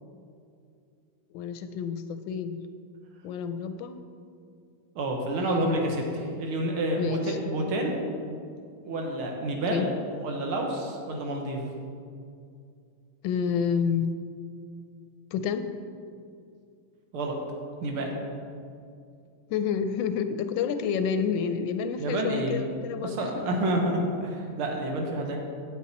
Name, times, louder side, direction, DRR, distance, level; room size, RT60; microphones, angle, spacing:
voice 1, 1.3-2.6 3.2-4.0 5.4-6.2 7.0-7.4 9.7-9.9 13.2-14.1 15.3-15.6 19.5-23.4, left 7 dB, 75° left, 9 dB, 1.2 m, -29 dB
voice 2, 5.0-8.0 8.8-9.9 10.2-11.6 17.1-17.4 17.8-18.1 22.0-22.6 23.0-25.4, right 1 dB, 80° right, 1 dB, 2.1 m, -29 dB
9.5 x 8.4 x 4.2 m, 2.4 s
omnidirectional pair, 2.3 m